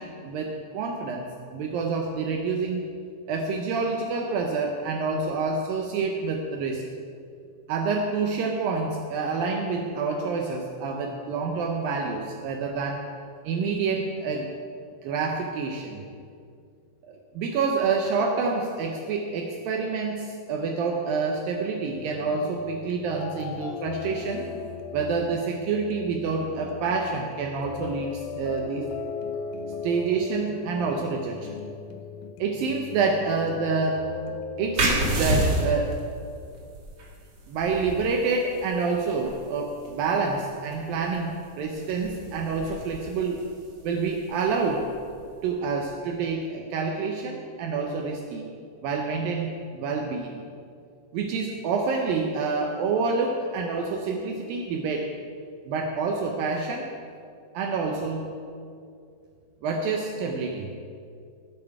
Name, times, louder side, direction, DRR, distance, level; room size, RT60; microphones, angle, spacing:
voice 1, 0.0-2.9 3.3-6.8 7.7-13.1 13.4-14.5 15.0-16.0 17.1-24.5 24.9-28.9 29.8-31.6 32.4-34.1 34.6-36.0 37.5-43.5 43.8-44.9 45.4-48.5 48.8-50.4 51.1-55.1 55.7-57.0 57.5-58.3 59.6-60.7, right 4 dB, 80° right, 2 dB, 2.1 m, -28 dB
sound 1, 21.9-35.9, left 6 dB, 85° left, 2.2 m, -38 dB
sound 2, 34.7-46.0, right 2 dB, 55° right, 1.1 m, -32 dB
18.0 x 7.3 x 4.8 m, 2.3 s
omnidirectional pair, 5.1 m